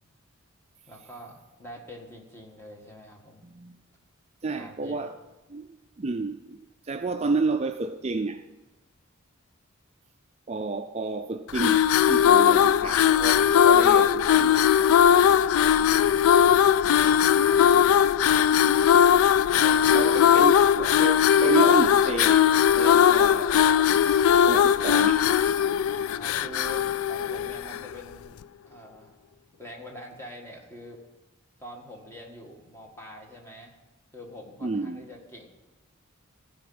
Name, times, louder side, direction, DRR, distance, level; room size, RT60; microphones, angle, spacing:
voice 1, 0.9-3.4 4.5-5.1 16.3-17.3 19.5-20.4 26.1-28.4 28.6-29.2 29.6-31.0 31.6-33.7 34.1-35.5, equal, 10° left, 1.7 m, -45 dB
voice 2, 3.4-3.8 4.4-5.2 5.5-6.6 6.8-8.4 10.5-14.7 18.5-18.8 19.9-25.3 34.6-35.0, right 3 dB, 30° right, 0.4 m, -31 dB
sound 1, 11.5-27.9, left 9 dB, 80° left, 0.3 m, -19 dB
15.0 x 5.1 x 8.6 m
head